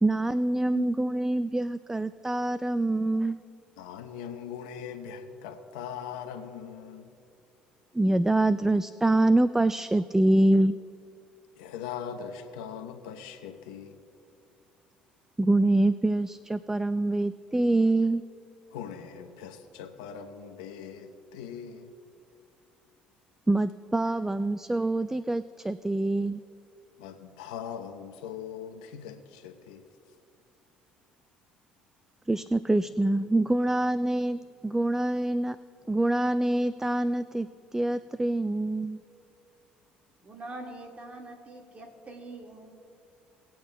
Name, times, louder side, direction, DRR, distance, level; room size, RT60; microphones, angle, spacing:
voice 1, 0.0-3.4 7.9-10.8 15.4-18.2 23.5-26.4 32.3-35.6 35.9-39.0, right 2 dB, 10° right, 14 dB, 0.3 m, -25 dB
voice 2, 3.8-7.1 11.6-14.0 18.7-21.9 27.0-29.8, left 8 dB, 85° left, 6 dB, 0.8 m, -40 dB
voice 3, 40.2-42.8, right 2 dB, 35° right, 2 dB, 1.8 m, -44 dB
19.5 x 8.7 x 2.2 m, 2.5 s
hypercardioid pair, 65°, 4 cm